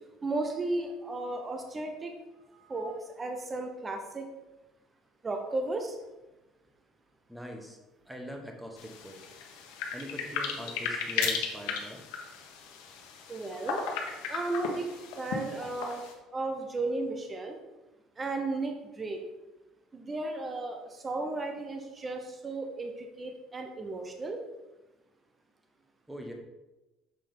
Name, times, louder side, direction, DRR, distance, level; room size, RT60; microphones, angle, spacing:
voice 1, 0.2-2.1 2.5-4.3 5.2-6.0 13.3-13.8 14.3-16.0 16.3-17.6 18.2-19.2 19.9-24.4, right 2 dB, 20° right, 4 dB, 0.8 m, -34 dB
voice 2, 7.3-7.8 8.1-9.2 9.9-12.0 26.1-26.3, equal, 5° right, 2 dB, 1.2 m, -42 dB
sound 1, 8.8-16.1, left 6 dB, 90° left, 1.1 m, -36 dB
6.8 x 4.9 x 3.9 m, 1.1 s
cardioid pair, 125°, 0 cm